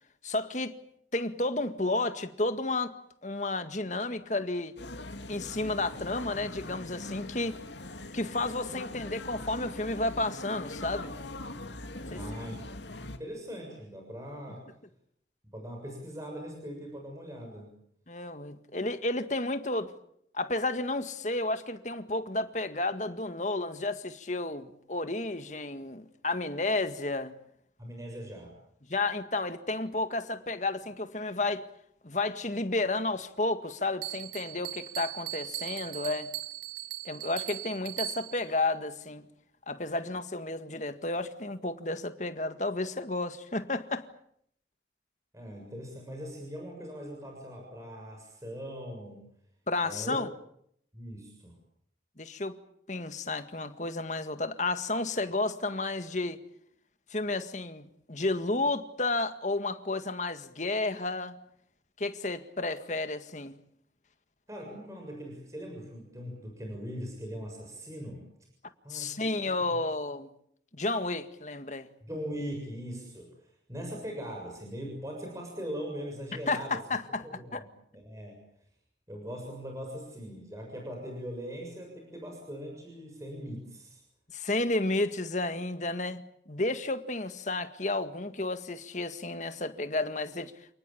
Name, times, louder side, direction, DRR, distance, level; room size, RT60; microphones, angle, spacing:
voice 1, 0.2-0.7 1.1-3.0 3.2-4.7 5.3-7.6 8.1-11.1 12.1-12.2 18.1-19.9 20.3-27.3 28.9-31.7 32.0-36.3 37.1-39.2 39.7-44.1 49.7-50.3 52.2-52.6 52.9-56.4 57.1-61.4 62.0-63.6 68.9-70.3 70.7-71.9 76.5-77.3 77.5-77.6 84.3-90.7, left 2 dB, 40° left, 1.9 m, -32 dB
sound 1, 4.8-13.2, left 2 dB, 80° left, 2.7 m, -41 dB
voice 2, 12.1-14.6 15.4-17.7 27.8-28.5 45.3-49.2 49.8-50.2 50.9-51.6 62.6-62.7 64.5-68.2 68.8-69.3 69.6-69.7 72.1-76.8 77.2-77.7 77.9-78.4 79.1-84.0, equal, 15° right, 6.9 m, -40 dB
Bell, 34.0-38.5, right 15 dB, 60° right, 1.5 m, -39 dB
29.5 x 19.5 x 8.7 m
head